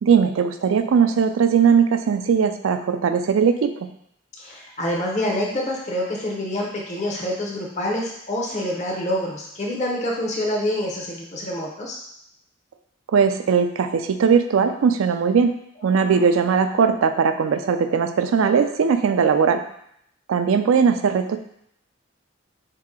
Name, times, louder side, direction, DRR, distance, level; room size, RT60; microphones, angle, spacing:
voice 1, 0.0-3.7 13.1-15.5 15.8-19.6 20.3-21.4, right 6 dB, 75° right, 8 dB, 0.4 m, -19 dB
voice 2, 4.4-12.0 15.9-16.2, left 1 dB, 35° left, -1 dB, 0.6 m, -27 dB
4.1 x 2.8 x 3.6 m, 0.73 s
head